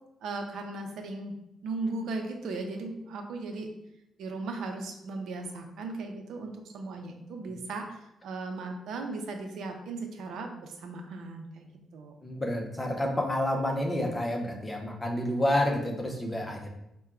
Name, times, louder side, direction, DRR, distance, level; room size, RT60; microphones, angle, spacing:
voice 1, 0.2-1.4 1.6-3.7 4.2-11.7 11.9-12.1, right 3 dB, 80° right, 4 dB, 0.6 m, -37 dB
voice 2, 12.2-16.7, left 1 dB, 10° left, 0 dB, 0.6 m, -29 dB
4.3 x 2.2 x 3.7 m, 0.85 s
cardioid pair, 160°, 0 cm